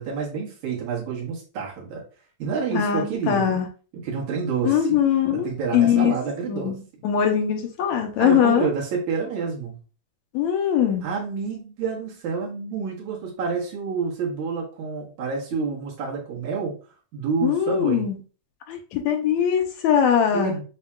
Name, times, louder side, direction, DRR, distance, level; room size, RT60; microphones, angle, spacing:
voice 1, 0.0-2.0 2.4-3.6 3.9-5.0 5.3-6.8 8.2-9.8 11.0-16.8 17.1-18.0 20.3-20.6, right 5 dB, 75° right, -3 dB, 2.7 m, -28 dB
voice 2, 2.7-3.7 4.6-5.5 5.7-6.1 6.5-8.7 10.3-11.0 17.4-18.2 18.7-20.6, left 9 dB, 80° left, 4 dB, 1.9 m, -21 dB
7.1 x 2.8 x 2.3 m, 0.36 s
omnidirectional pair, 3.4 m